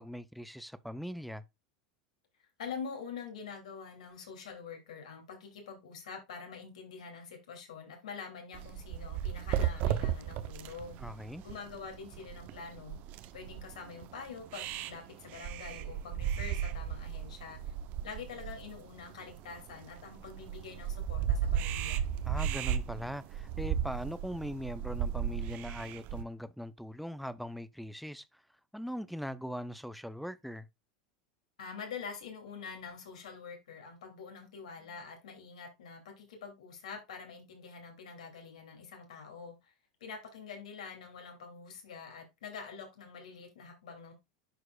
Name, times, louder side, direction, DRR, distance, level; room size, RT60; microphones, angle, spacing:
voice 1, 0.0-1.4 11.0-11.4 22.2-28.2 28.7-30.7, equal, ahead, 0.6 m, -40 dB
voice 2, 2.6-11.0 11.4-13.0 13.3-17.7 18.0-22.0 31.6-39.7 40.0-44.1, left 5 dB, 75° left, 2.7 m, -45 dB
sound 1, 8.5-26.2, right 9 dB, 50° right, 0.7 m, -35 dB
11.0 x 4.6 x 2.4 m
hypercardioid pair, 90°, 4 cm